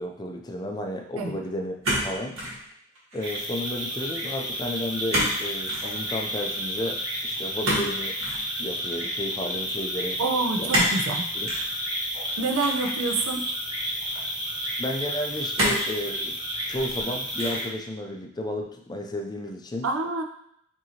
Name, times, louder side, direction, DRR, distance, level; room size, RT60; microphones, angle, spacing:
voice 1, 0.0-1.7 2.0-2.4 3.1-8.2 8.6-10.2 10.6-10.7 11.3-11.5 14.8-16.4 16.7-19.9, left 1 dB, 20° left, 3 dB, 0.3 m, -32 dB
sound 1, 1.8-2.6 2.9-3.4 5.1-5.4 5.6-5.9 7.6-8.4 10.7-11.0 11.4-11.7 12.6-13.4 14.1-14.2 15.5-15.9 16.5-17.0 17.4-17.7, equal, 75° right, 1.6 m, -27 dB
sound 2, 3.2-17.7, equal, 20° right, 0.7 m, -31 dB
voice 2, 10.2-11.3 12.4-13.5 19.8-20.2, right 3 dB, 90° right, 4 dB, 0.5 m, -27 dB
5.5 x 2.7 x 2.8 m, 0.73 s
head